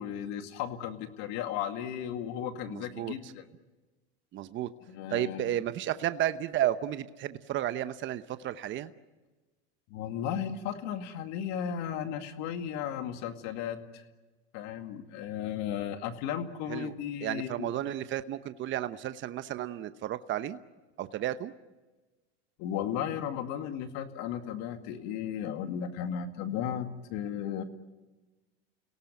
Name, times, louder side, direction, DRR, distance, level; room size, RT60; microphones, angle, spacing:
voice 1, 0.0-3.4 4.9-5.6 9.9-14.0 14.5-17.7 22.6-27.6, left 9 dB, 55° left, 7 dB, 2.2 m, -35 dB
voice 2, 2.7-3.3 4.3-4.7 5.1-8.9 16.7-16.9 17.2-20.6 21.0-21.5, right 12 dB, 35° right, 12 dB, 0.9 m, -32 dB
29.5 x 18.0 x 9.2 m, 1.2 s
hypercardioid pair, 105°, 32 cm